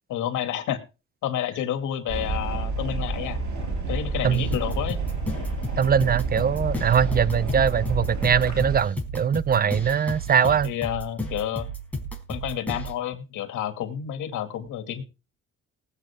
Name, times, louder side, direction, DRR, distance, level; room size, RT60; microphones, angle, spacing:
voice 1, 0.1-0.8 1.2-3.4 3.9-5.0 10.4-11.7 12.3-15.0, left 10 dB, 85° left, 2.3 m, -30 dB
sound 1, 2.1-8.8, right 3 dB, 75° right, 6.3 m, -29 dB
sound 2, 4.3-12.9, equal, 5° left, 4.6 m, -33 dB
voice 2, 5.8-10.7, right 7 dB, 30° right, 0.5 m, -22 dB
19.5 x 8.3 x 3.6 m
cardioid pair, 90°, 30 cm